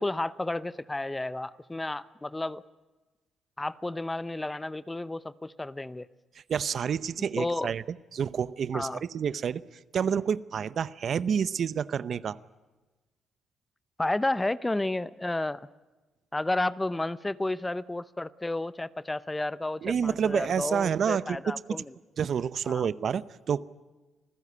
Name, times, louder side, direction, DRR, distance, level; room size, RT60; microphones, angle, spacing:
voice 1, 0.0-2.6 3.6-6.1 7.4-7.7 8.7-9.0 14.0-15.6 16.3-21.9 22.6-22.9, left 2 dB, 15° left, 17 dB, 0.7 m, -31 dB
voice 2, 6.5-7.8 8.1-9.6 9.9-12.4 19.8-21.5 22.2-23.6, right 7 dB, 55° right, 16 dB, 0.7 m, -28 dB
27.5 x 15.5 x 9.7 m, 1.2 s
cardioid pair, 90°, 0 cm